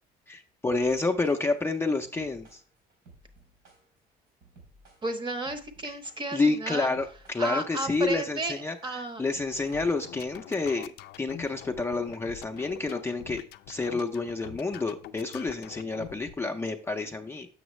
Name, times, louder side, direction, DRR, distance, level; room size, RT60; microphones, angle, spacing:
voice 1, 0.3-2.6 5.8-6.0 6.3-10.9 11.2-17.5, left 3 dB, 15° left, 3 dB, 0.5 m, -29 dB
sound 1, 0.7-10.3, right 2 dB, 90° right, 3.3 m, -57 dB
voice 2, 5.0-6.9 7.4-9.2, right 2 dB, 30° right, 10 dB, 0.8 m, -33 dB
sound 2, 9.7-16.4, left 13 dB, 75° left, 0.4 m, -45 dB
7.1 x 5.9 x 3.1 m, 0.41 s
cardioid pair, 110°, 17 cm